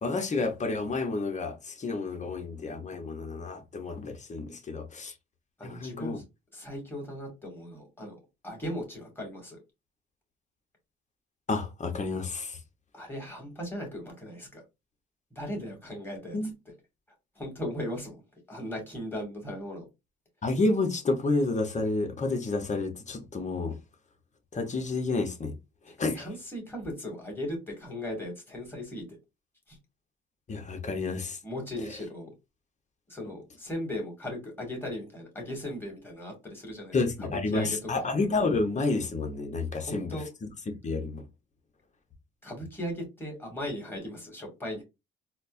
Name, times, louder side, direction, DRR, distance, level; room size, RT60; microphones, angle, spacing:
voice 1, 0.0-5.1 5.6-6.2 11.5-12.6 16.3-16.5 20.4-23.7 24.5-25.5 26.0-26.3 30.5-31.4 36.9-40.2 40.8-41.2, left 3 dB, 35° left, 0.9 m, -30 dB
voice 2, 5.6-6.2 6.5-8.1 8.4-9.6 12.9-14.6 15.4-16.4 16.7-16.8 17.4-18.2 18.5-19.8 26.1-29.2 29.7-29.8 31.4-32.3 33.1-38.1 39.7-40.3 42.4-44.8, left 1 dB, 10° left, 2.1 m, -37 dB
4.1 x 2.1 x 2.6 m
cardioid pair, 90°, 20 cm